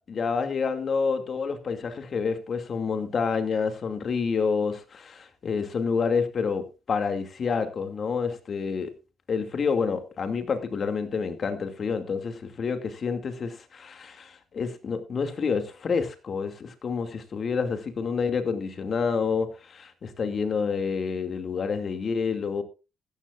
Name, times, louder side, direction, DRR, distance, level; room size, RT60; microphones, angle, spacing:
voice 1, 0.1-8.9 9.3-22.6, left 5 dB, 50° left, 2.4 m, -28 dB
15.5 x 13.0 x 2.5 m
supercardioid pair, 70°, 0 cm